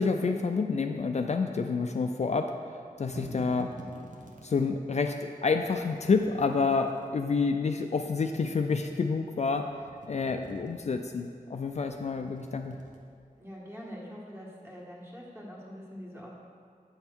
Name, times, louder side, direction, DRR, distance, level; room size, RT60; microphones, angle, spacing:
voice 1, 0.0-2.5 3.0-3.7 4.4-9.7 10.1-12.8, left 4 dB, 50° left, 5 dB, 0.4 m, -28 dB
sound 1, 2.8-4.7 5.5-7.1 8.1-9.1 9.5-11.0 11.6-13.4, right 2 dB, 65° right, 1.0 m, -49 dB
voice 2, 13.4-16.3, equal, 15° right, -4 dB, 1.6 m, -44 dB
8.9 x 5.5 x 4.5 m, 2.3 s
wide cardioid pair, 95°, 15 cm